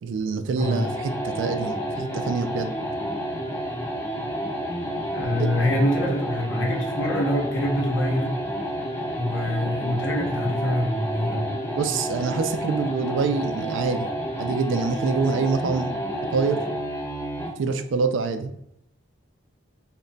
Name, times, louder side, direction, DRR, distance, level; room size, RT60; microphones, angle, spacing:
voice 1, 0.0-2.7 5.4-5.5 11.7-14.1 14.4-15.9 16.3-16.6 17.6-18.5, right 4 dB, 70° right, 8 dB, 0.3 m, -25 dB
voice 2, 0.5-0.8 5.1-8.4 9.2-11.5, left 1 dB, 70° left, -1 dB, 0.7 m, -25 dB
sound 1, 0.6-17.6, equal, 10° left, 0.3 m, -30 dB
2.2 x 2.1 x 3.7 m, 0.77 s
head